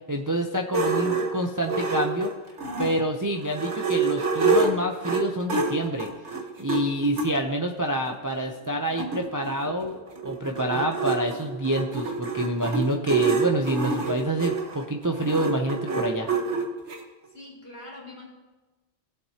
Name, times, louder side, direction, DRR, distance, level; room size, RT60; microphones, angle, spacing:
voice 1, 0.1-2.3 2.8-6.1 6.6-10.0 10.2-16.3, right 1 dB, 20° right, 2 dB, 0.5 m, -27 dB
sound 1, 0.7-3.0 3.4-7.3 8.1-8.2 8.5-8.6 8.7-17.0, right 4 dB, 80° right, 1.5 m, -27 dB
voice 2, 17.3-18.3, left 2 dB, 60° left, -4 dB, 3.0 m, -43 dB
20.0 x 7.7 x 2.9 m, 1.2 s
omnidirectional pair, 1.2 m